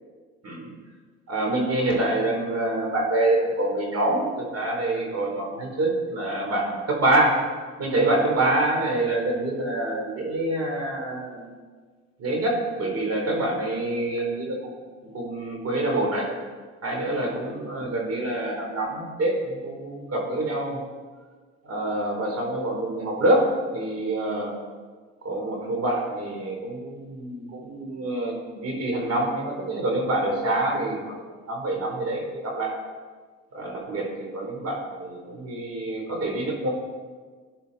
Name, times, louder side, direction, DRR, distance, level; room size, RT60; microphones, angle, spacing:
voice 1, 1.3-7.4 7.8-11.5 12.2-14.7 15.1-16.3 16.8-20.8 21.6-24.5 25.2-31.2 31.5-32.8 33.5-36.7, right 1 dB, 55° right, 1 dB, 3.9 m, -26 dB
19.0 x 10.0 x 4.2 m, 1.5 s
cardioid pair, 90°, 30 cm